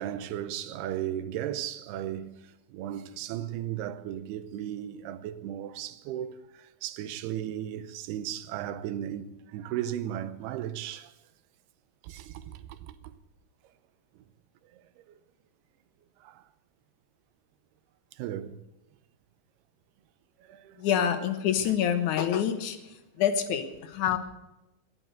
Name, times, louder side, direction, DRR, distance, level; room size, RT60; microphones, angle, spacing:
voice 1, 0.0-2.4 2.7-11.1 12.0-12.9 15.1-15.2 16.2-16.4 18.2-18.6 20.4-20.8, right 11 dB, 85° right, 2.8 m, -36 dB
voice 2, 20.8-22.8 23.2-24.2, left 9 dB, 65° left, 2.1 m, -26 dB
14.5 x 11.0 x 7.7 m
omnidirectional pair, 4.6 m